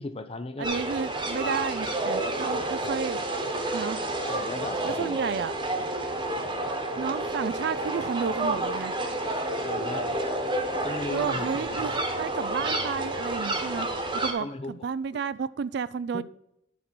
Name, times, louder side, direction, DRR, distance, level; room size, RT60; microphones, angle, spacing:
voice 1, 0.0-0.7 1.4-1.7 4.2-5.2 9.6-10.1 10.8-11.9 14.4-14.9 16.1-16.2, left 2 dB, 30° left, 0.6 m, -36 dB
sound 1, 0.6-14.3, right 2 dB, 25° right, 1.2 m, -30 dB
voice 2, 0.6-3.2 3.7-4.0 4.8-5.6 7.0-8.9 11.1-13.9 14.1-16.2, right 6 dB, 60° right, 0.3 m, -32 dB
Female singing, 7.1-9.3 9.6-11.7, left 1 dB, 55° left, 2.2 m, -45 dB
9.3 x 4.3 x 6.1 m
head